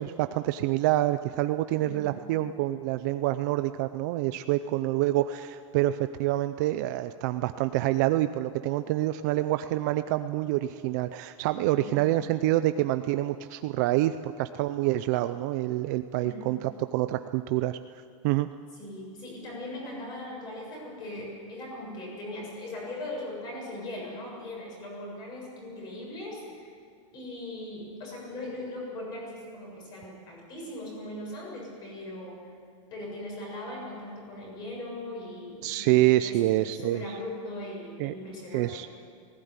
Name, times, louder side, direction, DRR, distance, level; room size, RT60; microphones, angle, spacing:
voice 1, 0.0-17.8 18.2-18.5 35.6-37.0 38.0-38.2 38.5-38.9, right 15 dB, 35° right, 10 dB, 0.5 m, -27 dB
voice 2, 1.7-2.2 11.7-12.1 16.2-16.5 18.8-26.7 27.1-32.5 32.9-38.8, left 1 dB, 25° left, -2 dB, 7.3 m, -39 dB
19.5 x 17.5 x 9.6 m, 2.3 s
supercardioid pair, 170°, 17 cm